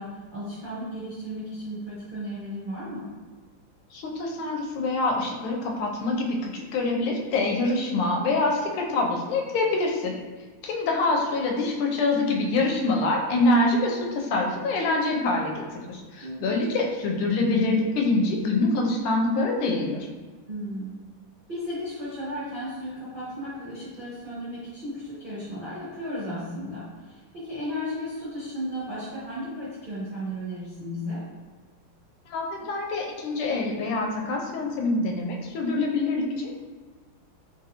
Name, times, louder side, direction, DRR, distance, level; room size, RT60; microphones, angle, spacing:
voice 1, 0.0-3.1 10.9-11.0 16.2-16.8 20.5-21.0 21.5-31.2, equal, 75° right, -11 dB, 0.4 m, -35 dB
voice 2, 3.9-10.1 10.6-20.1 32.3-36.6, left 2 dB, 80° left, 0 dB, 1.4 m, -25 dB
3.7 x 2.6 x 2.7 m, 1.4 s
omnidirectional pair, 2.4 m